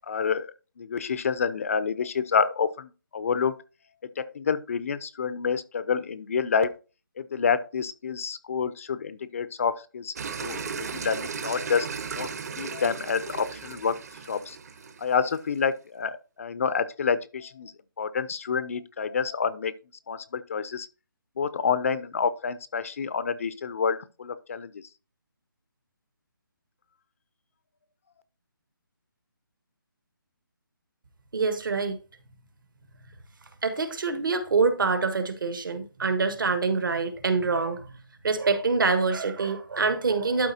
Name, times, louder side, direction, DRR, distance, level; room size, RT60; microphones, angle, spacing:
voice 1, 0.1-3.6 4.2-6.7 7.2-10.1 10.4-12.3 12.6-14.0 14.2-14.6 15.0-17.7 18.0-19.7 20.1-20.9 21.4-24.8, left 6 dB, 40° left, 0.4 m, -28 dB
sound 1, 10.2-15.6, right 6 dB, 45° right, 0.9 m, -36 dB
voice 2, 31.3-32.0 33.6-38.0 38.2-40.5, right 4 dB, 65° right, 1.5 m, -25 dB
12.0 x 4.3 x 2.7 m
hypercardioid pair, 160°, 12 cm